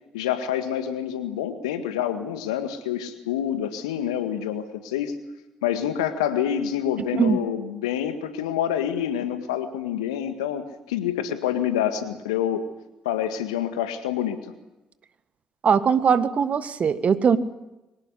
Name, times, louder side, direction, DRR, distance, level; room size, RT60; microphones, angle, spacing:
voice 1, 0.1-5.1 5.6-12.7 13.1-14.5, left 10 dB, 80° left, 9 dB, 1.9 m, -27 dB
voice 2, 15.6-17.4, right 6 dB, 45° right, 13 dB, 1.6 m, -20 dB
24.0 x 17.5 x 9.9 m, 0.99 s
hypercardioid pair, 45°, 3 cm